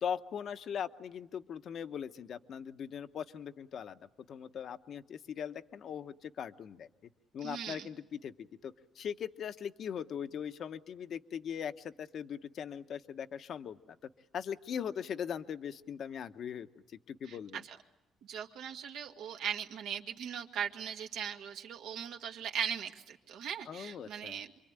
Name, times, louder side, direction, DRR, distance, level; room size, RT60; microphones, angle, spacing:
voice 1, 0.0-4.0 4.3-6.9 7.3-14.0 14.3-16.7 17.1-17.6 23.7-24.4, left 8 dB, 60° left, 10 dB, 1.0 m, -40 dB
voice 2, 7.4-7.9 17.2-17.8 18.2-24.5, right 8 dB, 85° right, 2 dB, 2.0 m, -39 dB
27.5 x 24.0 x 8.9 m, 0.97 s
cardioid pair, 105°, 0 cm